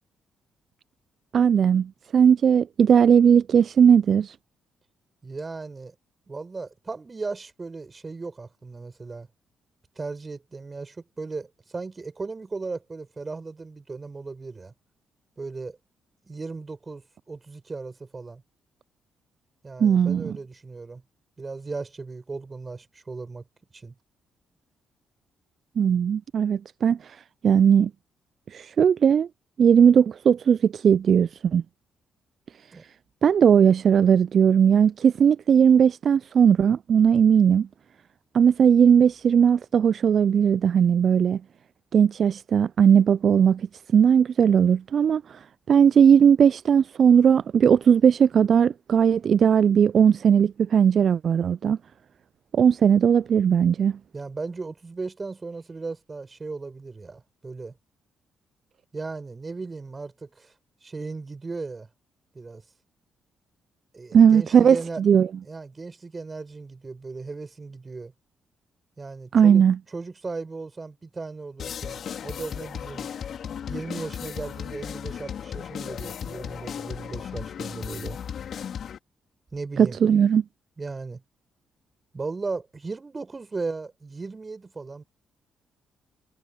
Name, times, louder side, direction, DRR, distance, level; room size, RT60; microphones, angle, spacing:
voice 1, 1.3-4.4 19.8-20.4 25.8-27.9 28.5-29.3 29.6-31.6 33.2-37.7 38.3-41.4 41.9-43.7 43.9-45.4 45.7-51.8 52.5-54.0 64.1-65.3 69.3-69.8 79.8-80.4, right 7 dB, 55° right, 0.5 m, -18 dB
voice 2, 5.2-5.9 6.3-9.3 10.0-14.7 15.4-15.8 16.2-18.4 19.6-21.0 21.4-23.4 23.7-24.0 32.7-32.8 54.1-57.8 58.9-60.5 60.8-61.9 62.3-62.6 63.9-65.0 65.4-68.1 69.0-69.6 69.9-73.1 73.7-78.2 79.5-80.0 80.8-81.2 82.1-85.0, right 3 dB, 30° right, 6.1 m, -36 dB
sound 1, 71.6-79.0, left 8 dB, 55° left, 3.7 m, -35 dB
hypercardioid pair, 40°, 0 cm